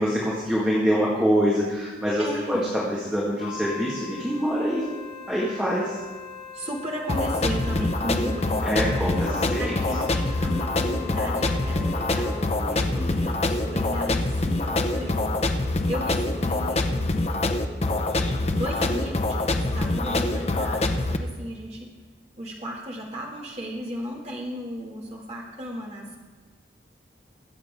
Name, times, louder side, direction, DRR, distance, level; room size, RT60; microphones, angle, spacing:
voice 1, 0.0-2.6 2.9-4.9 5.3-6.0 8.6-9.7 12.6-13.4, equal, 5° right, -7 dB, 2.0 m, -25 dB
voice 2, 2.2-2.7 6.5-18.1 18.5-21.9 22.4-26.2, equal, 35° right, -3 dB, 2.4 m, -35 dB
Wind instrument woodwind instrument, 3.4-12.7, left 7 dB, 55° left, 3.7 m, -41 dB
sound 1, 7.1-21.2, left 2 dB, 35° left, 0.7 m, -25 dB
23.0 x 7.9 x 3.8 m, 1.4 s
head